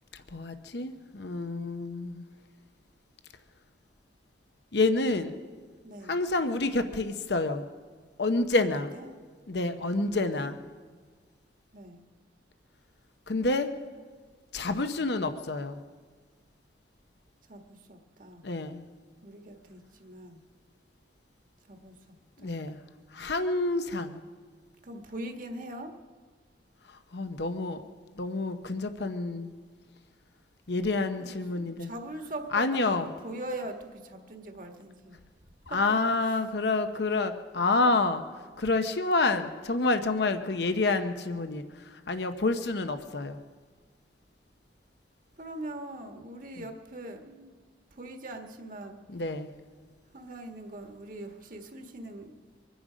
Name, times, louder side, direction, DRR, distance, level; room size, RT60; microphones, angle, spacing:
voice 1, 0.3-2.2 4.7-5.4 6.1-7.7 8.2-8.9 9.5-10.6 13.3-13.7 14.5-15.8 18.4-18.8 22.4-22.8 23.1-24.2 27.1-27.8 28.2-29.5 30.7-31.9 32.5-33.1 35.7-38.2 38.6-43.4 49.1-49.5, left 3 dB, 65° left, 8 dB, 0.8 m, -28 dB
voice 2, 5.8-6.2 8.6-9.1 9.9-10.5 11.7-12.0 17.5-18.4 19.2-20.4 21.7-22.6 24.8-25.9 31.2-35.2 35.7-35.8 36.3-36.4 45.4-47.5 47.9-49.0 50.1-52.4, right 1 dB, 45° right, 4 dB, 1.5 m, -42 dB
25.0 x 10.5 x 5.1 m, 1.5 s
head